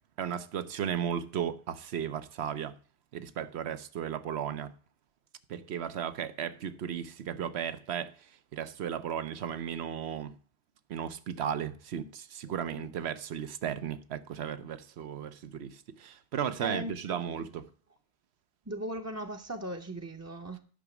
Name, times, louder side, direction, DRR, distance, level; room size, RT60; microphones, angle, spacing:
voice 1, 0.2-2.7 3.1-4.7 5.5-8.1 8.5-10.3 10.9-17.6, right 8 dB, 85° right, 1.0 m, -35 dB
voice 2, 12.5-12.9 16.6-17.5 18.7-20.6, right 1 dB, 20° right, 0.6 m, -38 dB
10.0 x 6.0 x 7.0 m
omnidirectional pair, 1.1 m